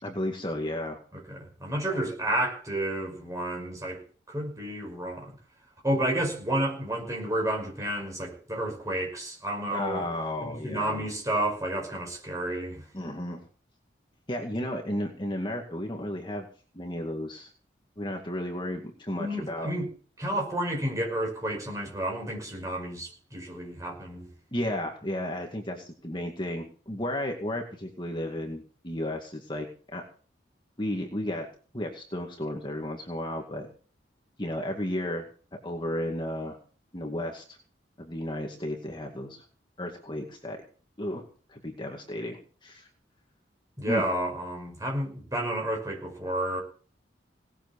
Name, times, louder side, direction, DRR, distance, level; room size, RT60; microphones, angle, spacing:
voice 1, 0.0-1.0 1.8-2.0 9.7-11.1 12.9-13.4 14.3-16.5 16.7-17.5 18.0-19.7 24.5-30.0 30.8-31.5 31.7-33.7 34.4-35.2 35.6-36.6 36.9-37.6 38.0-39.4 39.8-40.6 41.0-41.2 41.5-42.9 43.9-44.1, left 1 dB, 25° left, 2 dB, 2.1 m, -33 dB
voice 2, 1.1-4.0 4.3-5.4 5.8-10.1 10.4-12.8 19.2-19.9 20.2-24.3 43.8-46.6, right 1 dB, 20° right, 1 dB, 5.8 m, -31 dB
18.5 x 7.5 x 7.0 m, 0.41 s
head